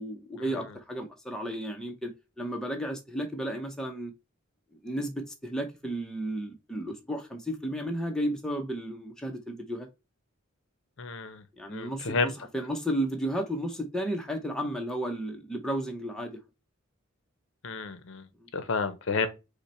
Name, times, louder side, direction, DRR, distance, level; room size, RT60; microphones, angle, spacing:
voice 1, 0.0-2.1 2.4-4.1 4.8-9.9 11.6-16.4 18.4-18.5, right 1 dB, 5° left, 0.6 m, -33 dB
voice 2, 11.0-11.4 11.7-12.3 17.6-18.3 18.5-19.3, left 4 dB, 60° left, 0.6 m, -30 dB
5.6 x 2.1 x 4.2 m
head